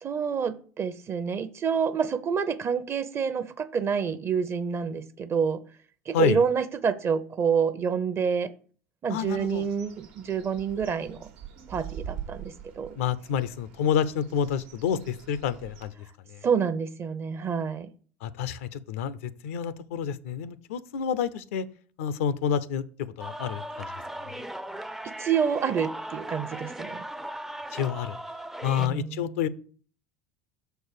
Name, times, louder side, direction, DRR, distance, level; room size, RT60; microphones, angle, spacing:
voice 1, 0.0-5.6 6.1-8.5 9.0-11.3 11.7-13.0 16.4-17.9 25.0-27.0 28.8-29.4, right 6 dB, 35° right, 13 dB, 0.8 m, -28 dB
voice 2, 9.1-9.7 13.0-16.4 18.2-21.7 22.0-22.8 23.2-23.9 24.3-24.4 27.7-28.2 28.6-29.5, left 8 dB, 80° left, 16 dB, 0.6 m, -29 dB
Bird, 9.2-15.9, right 8 dB, 75° right, 1.3 m, -44 dB
sound 1, 23.2-28.9, right 1 dB, 5° right, 0.5 m, -38 dB
6.5 x 4.6 x 6.6 m, 0.43 s
hypercardioid pair, 85°, 7 cm